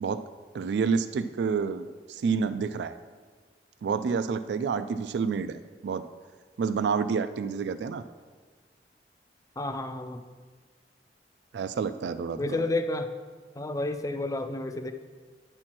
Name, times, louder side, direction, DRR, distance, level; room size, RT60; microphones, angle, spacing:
voice 1, 0.5-3.0 3.8-6.1 6.6-8.0 11.5-12.6, right 5 dB, 75° right, 12 dB, 0.3 m, -29 dB
voice 2, 9.6-10.2 12.4-13.1 13.6-14.9, left 2 dB, 20° left, 8 dB, 0.4 m, -30 dB
9.6 x 4.4 x 6.0 m, 1.5 s
head